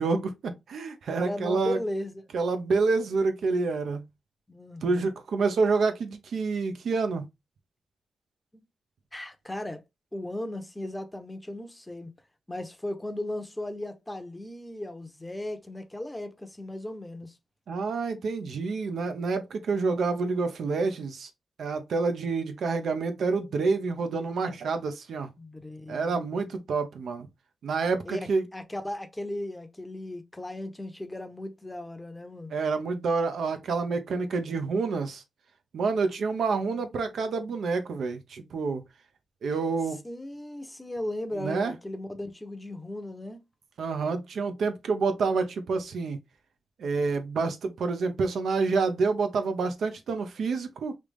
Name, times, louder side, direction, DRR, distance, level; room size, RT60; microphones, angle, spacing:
voice 1, 0.0-1.8 2.3-4.0 4.8-7.3 17.7-21.3 21.6-25.3 25.9-27.3 27.6-28.4 32.5-35.2 35.7-38.8 39.4-40.0 41.4-41.7 43.8-46.2 46.8-50.9, right 4 dB, 80° right, 0.6 m, -28 dB
voice 2, 1.1-2.3 4.5-5.1 9.1-9.8 10.1-12.1 12.5-17.4 25.4-26.4 28.1-32.5 40.0-43.4, left 1 dB, 15° left, 0.7 m, -36 dB
3.2 x 2.5 x 3.3 m
cardioid pair, 80°, 0 cm